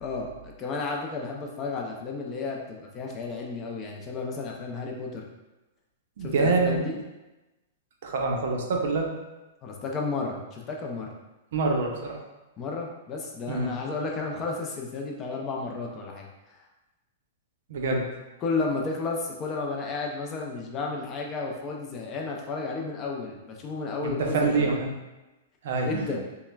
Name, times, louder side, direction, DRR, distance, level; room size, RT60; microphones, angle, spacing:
voice 1, 0.0-5.3 6.2-7.0 9.6-11.1 12.6-16.6 18.4-24.8 25.8-26.2, left 3 dB, 20° left, 0 dB, 0.4 m, -32 dB
voice 2, 6.2-6.8 8.0-9.1 11.5-12.2 13.5-13.7 17.7-18.0 24.0-24.9 25.6-26.1, right 3 dB, 65° right, 1 dB, 0.6 m, -26 dB
5.5 x 2.1 x 2.2 m, 1.1 s
supercardioid pair, 165°, 0 cm